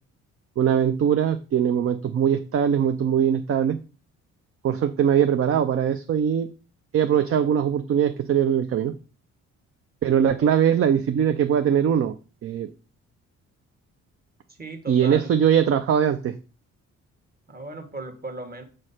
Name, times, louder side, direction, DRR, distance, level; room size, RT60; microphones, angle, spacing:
voice 1, 0.6-3.8 4.6-6.5 6.9-8.9 10.0-12.1 12.4-12.7 14.9-16.3, right 8 dB, 50° right, 8 dB, 0.6 m, -21 dB
voice 2, 10.1-10.6 14.6-15.3 17.5-18.6, right 2 dB, 30° right, 6 dB, 1.5 m, -37 dB
6.5 x 3.2 x 5.6 m, 0.35 s
cardioid pair, 90°, 30 cm